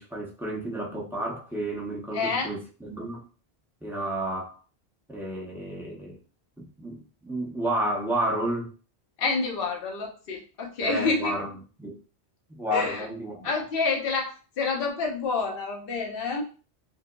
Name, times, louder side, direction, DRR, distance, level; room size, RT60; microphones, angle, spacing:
voice 1, 0.0-3.3 3.8-4.6 5.1-6.2 6.6-8.7 10.8-12.0 12.5-13.5, right 1 dB, 5° right, 0.6 m, -31 dB
voice 2, 2.1-2.5 9.2-11.3 12.7-13.1 13.4-16.4, left 4 dB, 60° left, 0.9 m, -28 dB
5.0 x 2.1 x 2.2 m
omnidirectional pair, 1.1 m